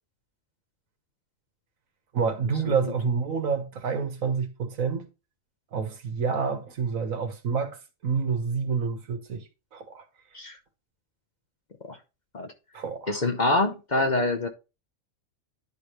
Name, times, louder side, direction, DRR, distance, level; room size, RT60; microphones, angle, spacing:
voice 1, 2.1-5.1 5.7-9.4 9.7-10.0 12.7-13.2, right 5 dB, 80° right, 1.6 m, -28 dB
voice 2, 13.1-14.5, left 2 dB, 40° left, 0.8 m, -25 dB
10.5 x 4.9 x 3.0 m
omnidirectional pair, 1.4 m